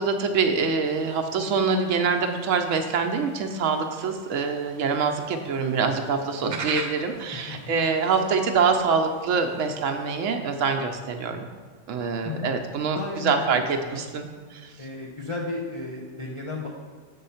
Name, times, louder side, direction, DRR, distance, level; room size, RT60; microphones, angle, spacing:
voice 1, 0.0-11.5 11.9-14.9, right 5 dB, 85° right, 4 dB, 1.0 m, -25 dB
sound 1, 0.8-10.4, right 5 dB, 50° right, 0.6 m, -43 dB
voice 2, 12.9-14.0 14.8-16.7, left 3 dB, 30° left, -3 dB, 0.7 m, -33 dB
7.0 x 3.8 x 5.5 m, 1.5 s
omnidirectional pair, 1.3 m